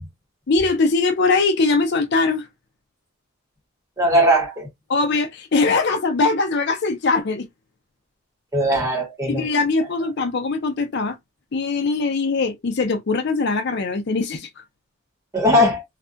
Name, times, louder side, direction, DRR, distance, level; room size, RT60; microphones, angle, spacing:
voice 1, 0.5-2.5 4.9-7.5 9.3-11.2 11.5-14.6, left 3 dB, 55° left, 0.5 m, -21 dB
voice 2, 4.0-4.7 8.5-9.5 15.3-15.8, equal, 15° right, 1.0 m, -19 dB
2.4 x 2.2 x 2.4 m
head